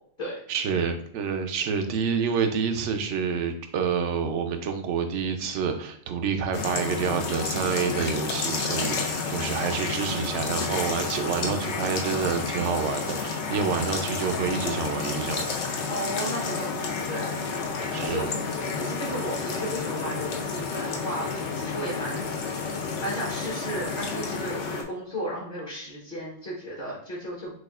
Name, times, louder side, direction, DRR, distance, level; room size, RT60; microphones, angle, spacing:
voice 1, 0.5-15.5 17.9-18.3, right 6 dB, 75° right, 6 dB, 0.9 m, -28 dB
sound 1, 6.5-24.8, left 4 dB, 70° left, 0.9 m, -30 dB
voice 2, 15.9-21.3 21.5-27.5, equal, 45° left, -6 dB, 1.4 m, -35 dB
6.2 x 2.4 x 2.4 m, 0.66 s
omnidirectional pair, 1.2 m